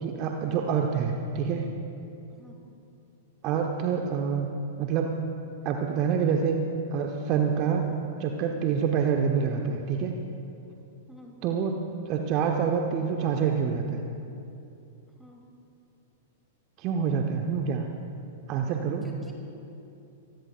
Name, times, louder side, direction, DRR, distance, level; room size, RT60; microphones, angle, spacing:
voice 1, 0.0-1.7 3.4-4.5 4.8-5.2 5.6-6.6 6.9-7.8 8.2-10.1 11.4-11.8 12.1-14.0 16.8-17.9 18.5-19.1, right 6 dB, 35° right, 3 dB, 1.0 m, -26 dB
voice 2, 2.3-2.6 11.1-11.4 15.2-15.4 19.0-19.3, left 1 dB, ahead, -1 dB, 2.9 m, -50 dB
24.5 x 19.5 x 2.5 m, 2.7 s
figure-of-eight pair, 100°, 0 cm